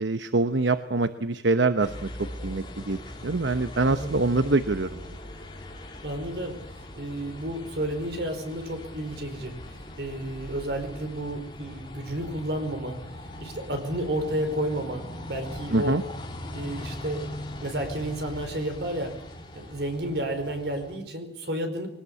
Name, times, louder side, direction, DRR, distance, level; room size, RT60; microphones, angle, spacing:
voice 1, 0.0-2.1 2.4-5.2 15.7-16.0, right 3 dB, 90° right, 11 dB, 1.0 m, -25 dB
sound 1, 1.8-21.0, left 1 dB, 25° left, 3.6 m, -40 dB
voice 2, 3.9-4.2 6.0-13.0 13.4-15.0 15.3-16.0 16.5-17.2 17.6-19.1 19.5-21.9, right 1 dB, 70° right, 6 dB, 5.0 m, -31 dB
22.0 x 19.0 x 8.4 m, 0.75 s
head